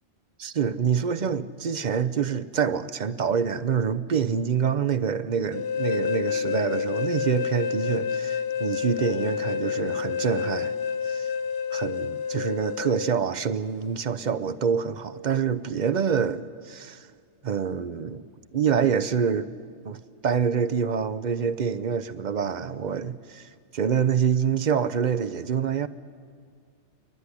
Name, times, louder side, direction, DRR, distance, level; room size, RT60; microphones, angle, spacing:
voice 1, 0.4-10.7 11.1-11.3 11.7-17.1 17.4-18.3 18.5-19.5 19.9-25.9, right 7 dB, 50° right, 0.6 m, -26 dB
sound 1, 5.5-13.1, left 7 dB, 60° left, 0.9 m, -29 dB
28.5 x 12.0 x 9.8 m
omnidirectional pair, 1.3 m